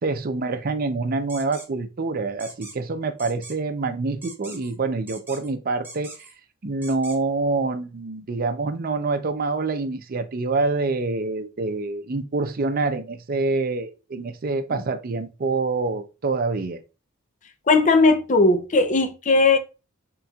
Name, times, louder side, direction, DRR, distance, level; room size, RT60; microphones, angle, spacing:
voice 1, 0.0-6.1 6.6-16.8, right 3 dB, 50° right, 0.5 m, -26 dB
sound 1, 1.3-1.7 2.4-2.8 3.2-3.6 4.2-4.7 5.1-5.5 5.8-6.3 6.8-7.2, right 2 dB, 10° right, 1.1 m, -41 dB
voice 2, 17.7-19.6, left 3 dB, 40° left, 0.5 m, -18 dB
4.2 x 3.8 x 2.3 m
head